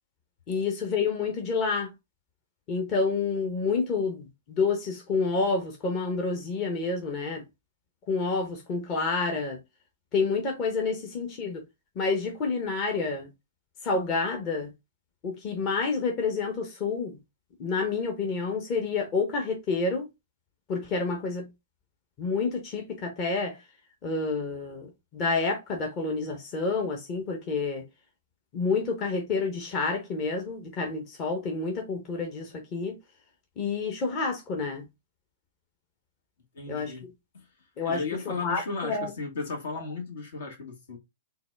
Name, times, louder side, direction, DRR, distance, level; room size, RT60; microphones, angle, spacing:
voice 1, 0.5-1.9 2.7-7.4 8.1-9.6 10.1-11.6 11.9-13.3 13.8-14.7 15.2-17.2 17.6-20.1 20.7-21.5 22.2-23.6 24.0-27.8 28.5-33.0 33.6-34.9 36.7-36.9 37.8-39.1, left 4 dB, 35° left, 1.0 m, -29 dB
voice 2, 36.5-37.1 37.3-37.5 37.8-41.0, left 4 dB, 70° left, 1.3 m, -35 dB
3.9 x 2.3 x 3.2 m
hypercardioid pair, 115°, 0 cm